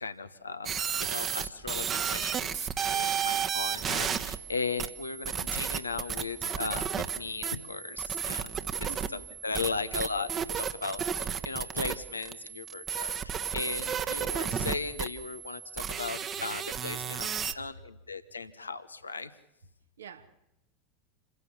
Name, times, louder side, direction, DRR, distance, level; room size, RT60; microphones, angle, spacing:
voice 1, 0.0-19.3, left 4 dB, 85° left, 0.9 m, -37 dB
sound 1, 0.6-17.5, right 8 dB, 30° right, 1.2 m, -33 dB
voice 2, 3.3-3.7 8.9-9.2 20.0-20.3, right 6 dB, 75° right, 1.7 m, -48 dB
28.0 x 16.5 x 7.2 m
figure-of-eight pair, 80°, 0 cm